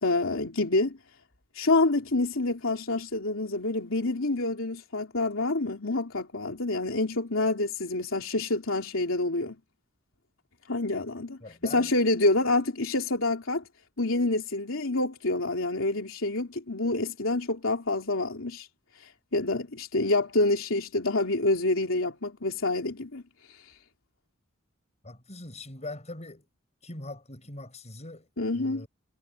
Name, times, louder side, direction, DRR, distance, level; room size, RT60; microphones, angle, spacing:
voice 1, 0.0-1.0 1.5-9.6 10.7-13.6 14.0-18.7 19.3-23.2 28.4-28.9, left 2 dB, 75° left, 3.2 m, -27 dB
voice 2, 11.4-11.9 25.0-26.5 26.8-28.9, left 2 dB, 35° left, 5.9 m, -42 dB
head